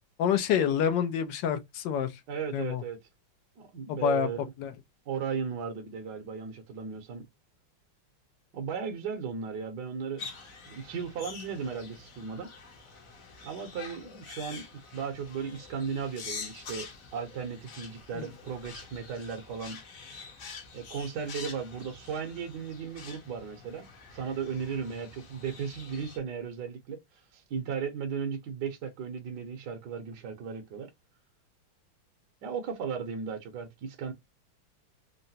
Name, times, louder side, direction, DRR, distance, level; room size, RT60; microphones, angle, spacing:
voice 1, 0.2-2.1 2.5-2.8 3.9-4.3 4.6-4.7 18.1-18.3, left 8 dB, 75° left, 1.0 m, -27 dB
voice 2, 2.3-3.0 3.6-4.4 5.1-7.2 8.5-10.3 10.7-12.5 13.4-14.6 14.9-19.8 20.7-27.0 27.3-30.9 32.4-34.1, right 6 dB, 65° right, 1.2 m, -36 dB
sound 1, 10.2-26.2, left 5 dB, 50° left, 1.0 m, -46 dB
3.8 x 2.1 x 2.6 m
omnidirectional pair, 2.4 m